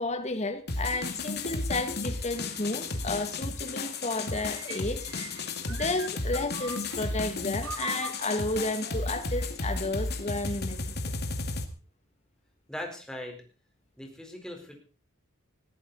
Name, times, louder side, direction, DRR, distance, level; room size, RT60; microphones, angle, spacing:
voice 1, 0.0-5.1 5.7-10.9, left 2 dB, 30° left, 7 dB, 2.3 m, -32 dB
sound 1, 0.7-11.6, left 3 dB, 50° left, 2.3 m, -34 dB
sound 2, 4.3-7.1 7.6-9.4, right 5 dB, 75° right, 1.4 m, -42 dB
voice 2, 12.7-13.4 14.0-14.8, left 1 dB, 5° left, 2 dB, 4.3 m, -39 dB
20.0 x 14.0 x 4.2 m, 0.36 s
head